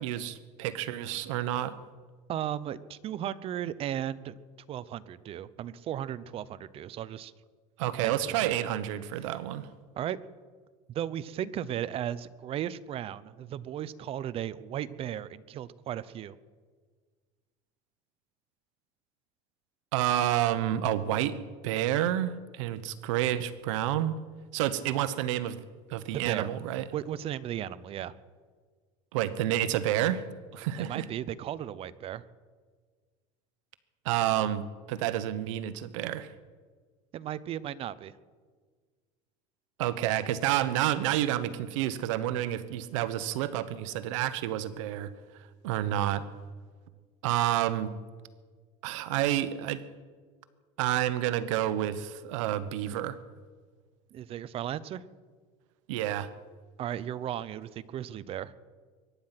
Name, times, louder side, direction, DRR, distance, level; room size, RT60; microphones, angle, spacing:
voice 1, 0.0-1.7 7.8-9.7 19.9-21.4 21.6-24.2 24.5-25.6 25.9-26.9 29.1-30.2 30.5-31.0 34.0-36.3 39.8-45.1 45.6-46.3 47.2-47.9 48.8-49.8 50.8-53.2 55.9-56.3, right 12 dB, 85° right, 14 dB, 1.1 m, -29 dB
voice 2, 2.3-4.3 4.7-7.3 8.0-8.5 10.0-10.2 10.9-16.3 26.1-26.5 26.9-28.1 30.8-32.2 37.1-38.1 54.1-55.0 56.8-58.5, right 11 dB, 35° right, 17 dB, 0.7 m, -35 dB
23.0 x 10.5 x 5.8 m, 1.6 s
supercardioid pair, 135°, 16 cm